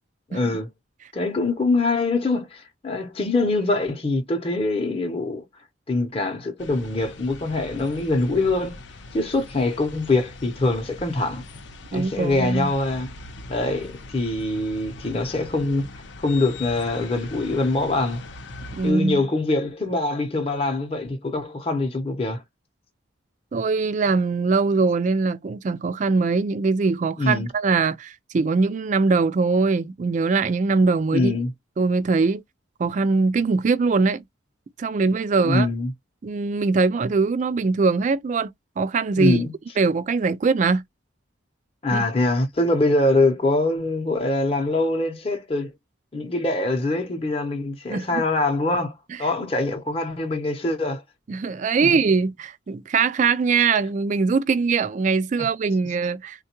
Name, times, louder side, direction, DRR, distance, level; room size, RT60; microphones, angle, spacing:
voice 1, 0.3-0.7 1.1-5.4 5.9-8.8 9.1-11.4 11.9-13.1 13.5-15.9 16.2-18.2 18.8-22.4 27.2-27.5 31.1-31.5 35.4-35.9 39.2-39.5 41.8-45.7 46.1-48.9 49.2-51.0 51.8-51.9, left 2 dB, 30° left, 0.7 m, -23 dB
sound 1, 6.6-18.9, left 2 dB, 65° left, 0.7 m, -41 dB
voice 2, 11.9-12.7 18.7-19.2 23.5-31.3 31.8-32.4 32.8-34.2 34.8-35.7 36.2-38.5 38.8-39.4 39.8-40.8 41.9-42.0 47.9-48.2 51.3-56.4, right 4 dB, 40° right, 0.3 m, -22 dB
3.6 x 2.3 x 2.8 m
head